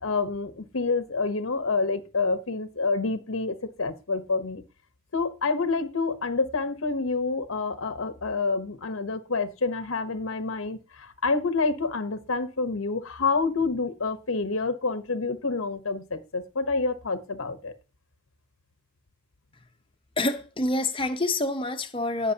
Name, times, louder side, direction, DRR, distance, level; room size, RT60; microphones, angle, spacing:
voice 1, 0.0-4.6 5.1-17.7, left 4 dB, 80° left, 0.9 m, -28 dB
voice 2, 20.2-22.3, left 2 dB, 25° left, 0.9 m, -27 dB
18.0 x 6.0 x 2.8 m
head